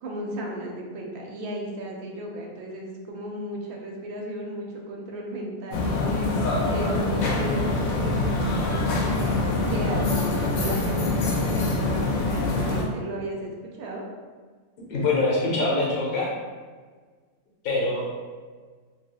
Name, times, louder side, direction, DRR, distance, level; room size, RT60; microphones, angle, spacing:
voice 1, 0.0-6.3 6.7-9.2 9.7-13.5 13.8-14.0, right 1 dB, 80° right, -1 dB, 1.1 m, -35 dB
sound 1, 5.7-12.8, left 2 dB, 75° left, 1.0 m, -24 dB
voice 2, 14.9-16.3 17.6-18.2, left 2 dB, 50° left, -4 dB, 0.7 m, -24 dB
3.1 x 2.7 x 2.3 m, 1.5 s
omnidirectional pair, 1.6 m